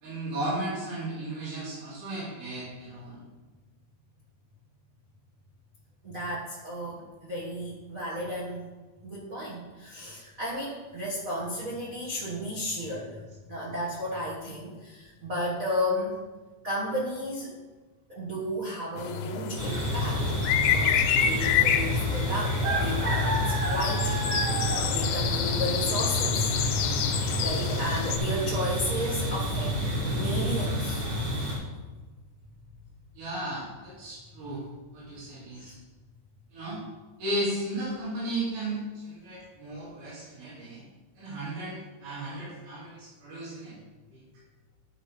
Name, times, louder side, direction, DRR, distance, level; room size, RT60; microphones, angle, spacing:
voice 1, 0.0-3.2 33.1-34.6 34.9-35.8 36.5-36.8 37.2-40.8 41.2-43.8 44.1-44.2, right 1 dB, 65° right, -11 dB, 4.4 m, -35 dB
voice 2, 6.0-8.7 9.0-13.2 13.5-16.1 16.6-17.5 18.1-20.2 20.7-26.6 27.4-31.2 35.5-35.8, equal, 85° right, -6 dB, 0.7 m, -33 dB
sound 1, 19.0-28.2, left 8 dB, 85° left, 2.3 m, -28 dB
sound 2, 19.6-31.6, equal, 30° right, 2.8 m, -29 dB
11.0 x 4.1 x 5.1 m, 1.3 s
omnidirectional pair, 4.1 m